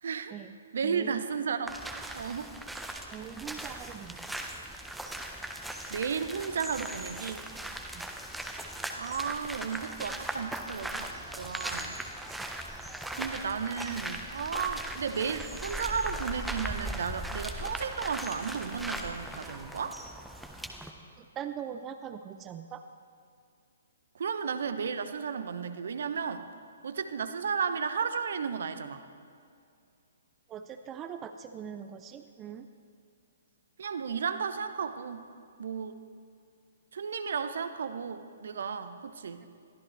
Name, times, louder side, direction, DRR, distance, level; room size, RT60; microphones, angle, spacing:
voice 1, 0.0-0.3 0.7-1.8 2.1-2.5 5.9-7.4 9.0-12.0 13.1-20.0 24.1-26.5 26.8-29.0 33.8-35.2 35.6-36.0 36.9-39.5, right 6 dB, 55° right, 10 dB, 0.9 m, -34 dB
voice 2, 0.8-1.2 3.1-4.4 7.9-8.1 12.3-12.5 21.2-22.8 30.5-32.7, right 8 dB, 20° right, 8 dB, 0.5 m, -42 dB
sound 1, 1.7-20.9, right 1 dB, 5° right, 1.0 m, -39 dB
22.0 x 14.5 x 3.3 m, 2.4 s
figure-of-eight pair, 120°, 0 cm